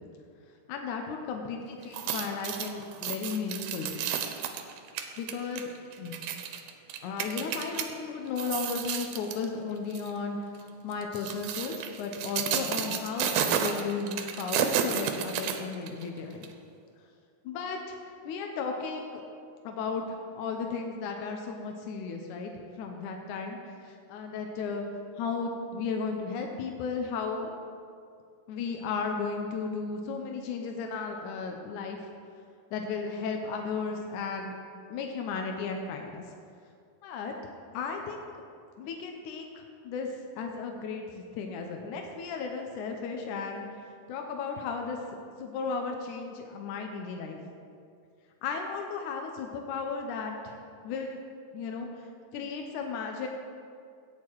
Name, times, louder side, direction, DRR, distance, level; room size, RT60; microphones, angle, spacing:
voice 1, 0.7-4.0 5.2-5.7 6.0-6.1 7.0-10.5 10.8-16.5 17.4-18.0 18.2-19.2 19.6-24.9 25.2-27.5 28.5-32.0 32.7-34.6 34.9-36.2 37.0-38.2 38.8-43.7 44.1-45.0 45.4-47.4 48.4-50.6 50.8-51.2 51.5-53.3, left 5 dB, 75° left, 3 dB, 1.8 m, -35 dB
sound 1, 1.8-7.9 8.3-9.5 9.9-10.1 10.9-16.0 16.4-16.5, right 8 dB, 80° right, 2.5 m, -32 dB
17.0 x 6.7 x 4.6 m, 2.3 s
omnidirectional pair, 4.4 m